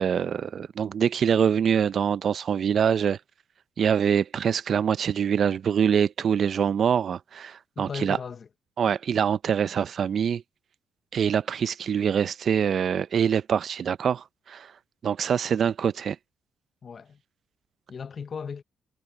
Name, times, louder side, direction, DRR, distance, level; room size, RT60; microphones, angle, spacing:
voice 1, 0.0-3.2 3.8-8.2 8.8-10.4 11.1-14.7 15.0-16.2, right 7 dB, 55° right, 0.5 m, -24 dB
voice 2, 7.8-8.5 16.8-17.2 17.9-18.6, left 6 dB, 45° left, 0.9 m, -36 dB
cardioid pair, 90°, 0 cm